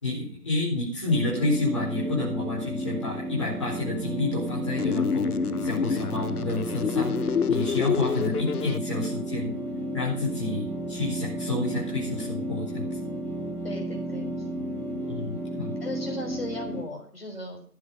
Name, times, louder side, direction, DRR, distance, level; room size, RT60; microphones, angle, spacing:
voice 1, 0.0-9.5 9.9-12.9 15.1-15.7, left 2 dB, 20° left, -8 dB, 4.4 m, -29 dB
sound 1, 1.0-16.8, right 1 dB, 15° right, 7.5 m, -33 dB
sound 2, 4.8-8.8, left 7 dB, 70° left, 0.6 m, -28 dB
voice 2, 13.6-14.5 15.8-17.6, left 1 dB, 40° left, 0 dB, 6.0 m, -37 dB
14.5 x 9.5 x 5.2 m, 0.43 s
figure-of-eight pair, 170°, 47 cm